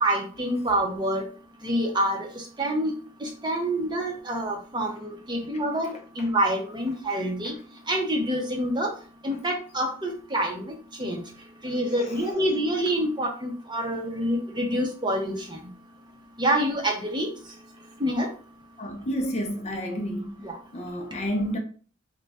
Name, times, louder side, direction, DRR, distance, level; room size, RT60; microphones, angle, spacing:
voice 1, 0.0-1.2 1.6-2.9 3.2-7.5 7.9-8.9 9.2-10.7 11.0-11.2 11.6-15.3 16.4-17.3 18.0-18.3 20.4-20.5, right 1 dB, 20° right, 0.6 m, -27 dB
voice 2, 12.0-12.3 18.8-21.6, equal, 30° left, 0.5 m, -31 dB
3.1 x 2.2 x 4.1 m
head